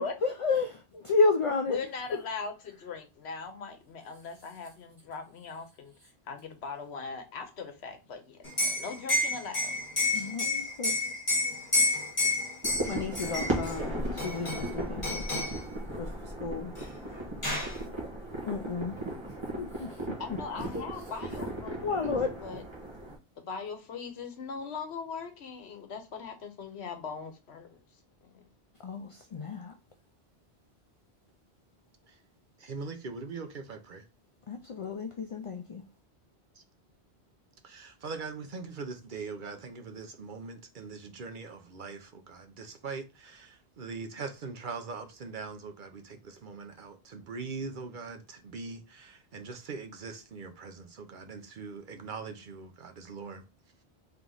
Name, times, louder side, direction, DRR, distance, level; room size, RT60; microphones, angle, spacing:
voice 1, 0.0-1.8 10.1-11.0 12.9-15.3 16.0-16.1 16.4-16.7 18.5-19.0 19.3-20.2 20.6-20.8 21.8-22.4 28.8-29.7 34.5-35.8, left 3 dB, 50° left, 0.4 m, -31 dB
voice 2, 1.7-5.9 6.3-9.7 20.2-22.6 23.4-27.8 28.3-28.4, left 5 dB, 75° left, 1.1 m, -40 dB
Liquid, 8.4-13.7 14.2-14.7 15.0-15.6 16.8-16.9 17.1-17.8, left 2 dB, 30° left, 1.7 m, -29 dB
sound 1, 12.6-23.2, right 1 dB, 25° right, 1.2 m, -37 dB
voice 3, 32.6-34.0 37.6-53.4, right 4 dB, 55° right, 0.7 m, -41 dB
3.5 x 2.9 x 3.8 m
omnidirectional pair, 1.1 m